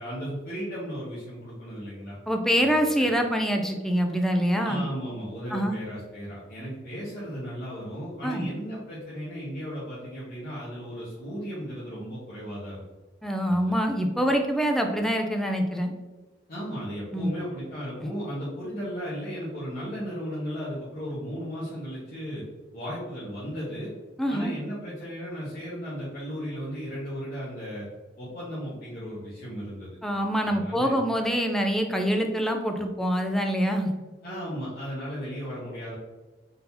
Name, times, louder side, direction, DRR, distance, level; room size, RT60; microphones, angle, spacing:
voice 1, 0.0-2.1 2.6-3.1 4.6-12.8 13.5-13.6 16.5-22.4 22.7-23.9 24.3-27.9 28.2-30.0 30.4-31.0 34.2-35.9, equal, 55° left, -10 dB, 1.4 m, -35 dB
voice 2, 2.3-4.8 5.5-5.8 8.2-8.5 13.2-15.9 17.1-17.3 24.2-24.5 30.0-33.9, equal, ahead, 3 dB, 0.5 m, -25 dB
4.0 x 3.8 x 2.8 m, 1.2 s
head